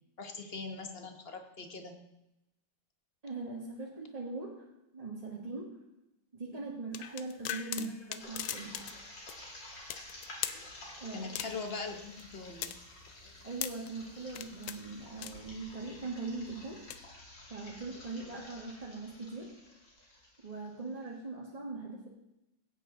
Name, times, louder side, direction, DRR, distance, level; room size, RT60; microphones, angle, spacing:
voice 1, 0.2-2.0 7.7-7.9 11.1-12.8, left 4 dB, 40° left, 5 dB, 1.0 m, -41 dB
voice 2, 3.2-4.7 4.9-5.7 6.3-8.7 11.0-11.3 13.4-16.8 17.5-19.5 20.4-22.1, right 3 dB, 25° right, -3 dB, 1.2 m, -41 dB
sound 1, 6.9-9.0 9.3-9.4 9.9-10.6 11.3-11.7 12.2-13.9 14.3-14.8 15.2-15.7 16.7-17.0, left 11 dB, 80° left, 1.4 m, -39 dB
sound 2, 8.2-21.0, left 1 dB, 65° left, 3.1 m, -51 dB
15.5 x 8.6 x 3.8 m, 0.90 s
omnidirectional pair, 2.1 m